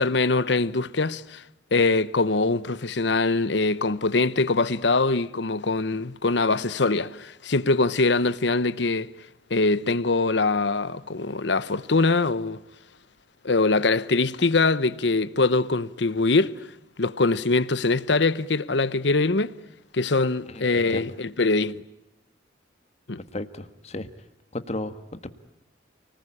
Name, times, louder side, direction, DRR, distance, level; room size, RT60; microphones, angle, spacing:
voice 1, 0.0-1.4 1.7-9.1 9.5-12.6 13.4-16.5 17.0-19.5 19.9-21.8 23.1-23.2, left 3 dB, 65° left, 0.9 m, -23 dB
voice 2, 20.5-21.1 23.3-24.1 24.5-25.3, left 1 dB, 35° left, 1.6 m, -34 dB
30.0 x 19.5 x 9.9 m
head